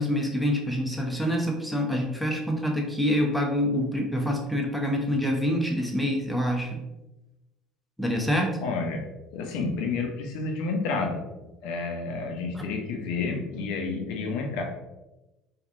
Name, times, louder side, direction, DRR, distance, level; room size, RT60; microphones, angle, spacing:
voice 1, 0.0-6.7 8.0-8.5, equal, 5° left, 0 dB, 0.7 m, -26 dB
voice 2, 8.6-9.0 9.3-11.2 11.6-14.6, left 4 dB, 65° left, 2 dB, 0.6 m, -30 dB
3.3 x 2.3 x 2.5 m, 1.0 s
figure-of-eight pair, 60°, 0 cm